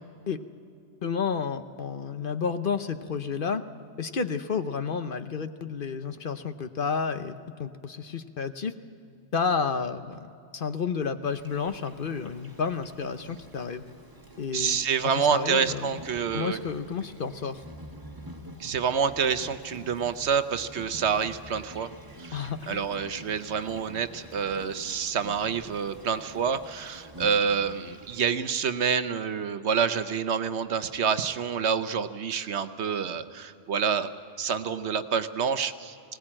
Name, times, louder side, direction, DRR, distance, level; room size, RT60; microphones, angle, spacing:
voice 1, 1.0-3.7 4.0-7.3 7.6-8.8 9.3-13.8 14.4-14.8 15.0-15.9 16.3-17.6 22.3-22.9, left 5 dB, 50° left, 10 dB, 1.0 m, -31 dB
Insect, 11.2-28.2, right 1 dB, 20° right, 1.7 m, -47 dB
voice 2, 14.5-16.6 18.6-21.9 22.2-34.1 34.4-36.0, right 6 dB, 70° right, 11 dB, 1.1 m, -27 dB
21.0 x 18.0 x 8.8 m, 2.5 s
omnidirectional pair, 1.2 m